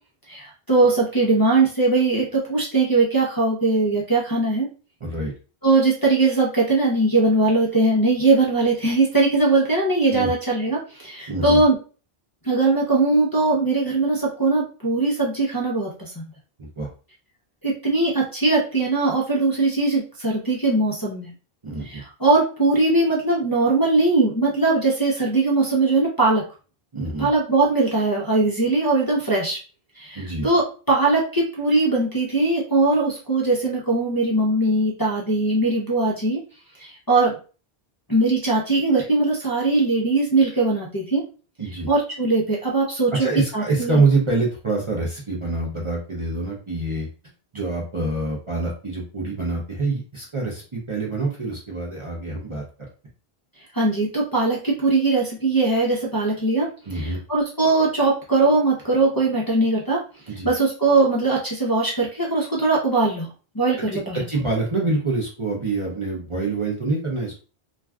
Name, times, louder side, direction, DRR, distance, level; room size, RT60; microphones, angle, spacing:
voice 1, 0.3-4.7 5.6-11.7 12.4-16.2 17.6-21.3 21.8-26.4 27.2-29.6 30.0-36.4 36.8-37.4 38.1-41.2 41.9-44.0 53.7-56.7 56.9-60.0 60.4-63.3 63.5-64.2, right 3 dB, 25° left, -5 dB, 0.5 m, -20 dB
voice 2, 5.0-5.3 10.1-10.3 11.3-11.6 16.6-16.9 21.6-22.0 26.9-27.3 30.1-30.5 41.6-41.9 43.2-47.1 47.5-52.6 56.9-57.2 60.3-60.5 63.9-67.4, right 3 dB, 35° right, -3 dB, 0.6 m, -25 dB
2.5 x 2.3 x 3.4 m, 0.36 s
omnidirectional pair, 1.1 m